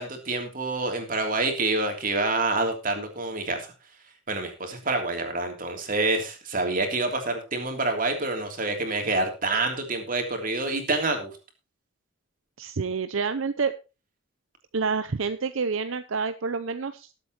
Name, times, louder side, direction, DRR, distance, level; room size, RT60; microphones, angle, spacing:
voice 1, 0.0-3.7 4.3-11.3, right 2 dB, 40° right, 4 dB, 3.2 m, -27 dB
voice 2, 12.6-13.7 14.7-17.1, right 5 dB, 70° right, 11 dB, 0.7 m, -28 dB
20.0 x 8.3 x 3.0 m, 0.30 s
head